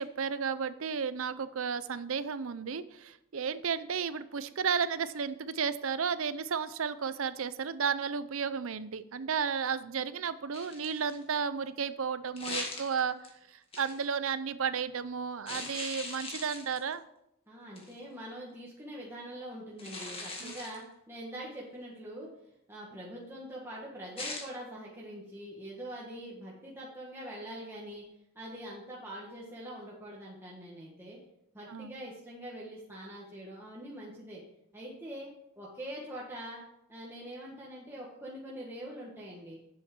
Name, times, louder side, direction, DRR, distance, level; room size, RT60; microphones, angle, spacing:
voice 1, 0.0-13.2 13.8-17.0 20.4-20.5 31.7-31.9, right 6 dB, 65° right, 15 dB, 0.6 m, -33 dB
sound 1, 10.5-11.2 12.4-13.3 13.7-14.1 15.5-16.9 17.8-18.0 19.8-20.8 24.2-24.5, left 2 dB, 25° left, 1.7 m, -40 dB
voice 2, 17.5-22.3 22.7-28.1 28.3-31.2 31.5-34.4 34.7-35.3 35.6-36.6 36.9-39.6, right 1 dB, 10° right, -5 dB, 1.6 m, -44 dB
8.4 x 7.3 x 6.0 m, 0.80 s
head